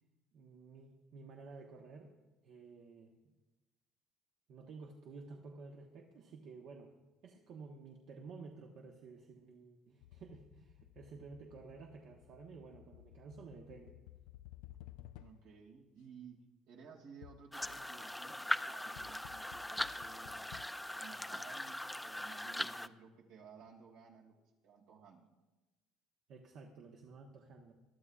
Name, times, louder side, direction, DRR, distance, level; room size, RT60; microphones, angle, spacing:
voice 1, 0.3-2.1 2.4-3.2 4.5-6.9 7.2-14.0 26.3-27.7, right 4 dB, 65° right, 1 dB, 1.2 m, -53 dB
sound 1, 10.0-15.7 17.2-18.1 19.0-20.7, left 14 dB, 85° left, 0.3 m, -56 dB
voice 2, 15.2-20.6 21.0-25.3, right 6 dB, 80° right, -1 dB, 2.7 m, -57 dB
sound 2, 17.5-22.9, left 1 dB, 5° left, 0.4 m, -40 dB
22.0 x 12.5 x 2.5 m, 1.1 s
supercardioid pair, 90°, 0 cm